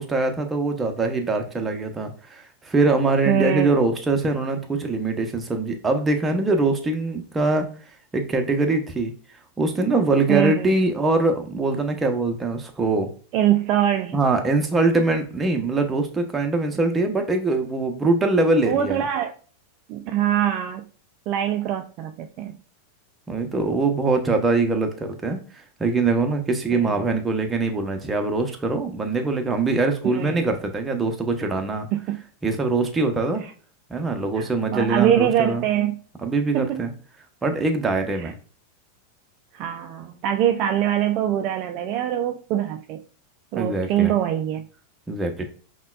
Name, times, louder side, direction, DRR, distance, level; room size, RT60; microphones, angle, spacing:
voice 1, 0.0-7.7 8.1-9.1 9.6-13.1 14.1-19.0 23.3-31.9 32.4-33.4 33.9-35.6 36.2-36.9 37.4-38.3 43.5-44.1 45.1-45.4, right 3 dB, 15° right, 4 dB, 0.7 m, -23 dB
voice 2, 3.3-3.7 10.3-10.7 13.3-14.2 18.7-19.3 19.9-20.8 21.3-22.5 26.7-27.0 30.0-30.5 31.9-32.2 34.7-36.0 36.5-36.8 38.2-38.3 39.5-43.0 43.5-44.7, right 11 dB, 50° right, 5 dB, 0.3 m, -23 dB
5.5 x 2.2 x 2.4 m, 0.41 s
hypercardioid pair, 95°, 0 cm